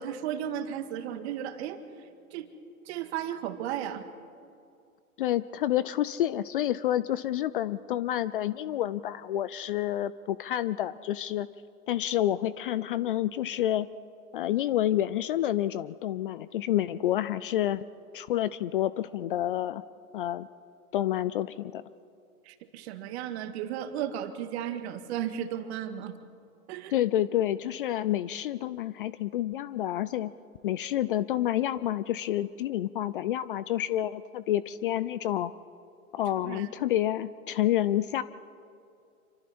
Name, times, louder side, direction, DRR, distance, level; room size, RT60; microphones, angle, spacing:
voice 1, 0.0-1.8 2.3-2.5 2.9-4.0 22.5-26.2 26.7-26.9 36.4-36.7, right 10 dB, 45° right, 8 dB, 2.0 m, -34 dB
voice 2, 5.2-11.5 11.9-13.9 14.3-17.8 18.1-19.8 20.1-20.5 20.9-21.8 26.9-30.3 30.6-35.5 36.1-38.2, left 12 dB, 40° left, 17 dB, 0.5 m, -29 dB
27.0 x 24.5 x 4.3 m, 2.4 s
hypercardioid pair, 120°, 45 cm